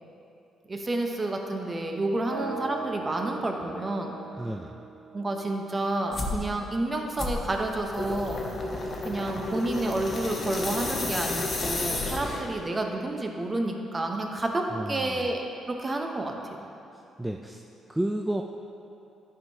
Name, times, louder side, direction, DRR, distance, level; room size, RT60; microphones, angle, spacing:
voice 1, 0.7-4.1 5.1-8.4 9.0-15.4 15.7-16.3, right 2 dB, 25° right, 2 dB, 0.8 m, -30 dB
sound 1, 2.3-6.2, right 3 dB, 85° right, 0.8 m, -40 dB
voice 2, 4.4-4.7 14.7-15.2 17.2-17.6 17.9-18.4, right 1 dB, 10° right, 2 dB, 0.3 m, -31 dB
sound 2, 6.1-6.4 7.2-12.6, left 2 dB, 40° left, 0.9 m, -32 dB
11.0 x 4.6 x 2.8 m, 2.8 s
cardioid pair, 90°, 0 cm